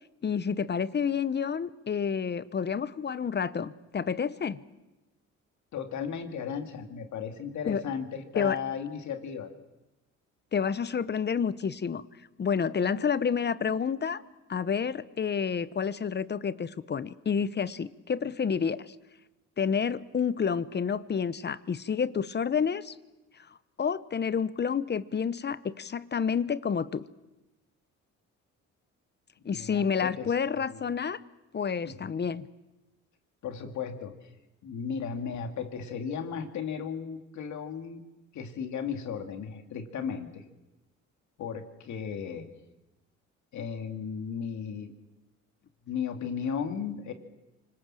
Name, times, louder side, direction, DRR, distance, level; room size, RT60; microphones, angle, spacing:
voice 1, 0.2-4.6 7.7-7.8 8.4-8.6 10.5-12.0 12.4-14.2 14.5-18.9 19.6-23.0 23.8-27.1 29.4-31.2 31.5-32.5, left 6 dB, 35° left, 15 dB, 0.9 m, -29 dB
voice 2, 5.7-9.5 29.5-30.8 31.8-32.1 33.4-34.3 34.6-38.0 38.3-40.4 41.4-42.5 43.5-44.9 45.8-47.1, left 7 dB, 70° left, 5 dB, 2.4 m, -35 dB
25.5 x 19.5 x 7.6 m, 1.0 s
cardioid pair, 90°, 30 cm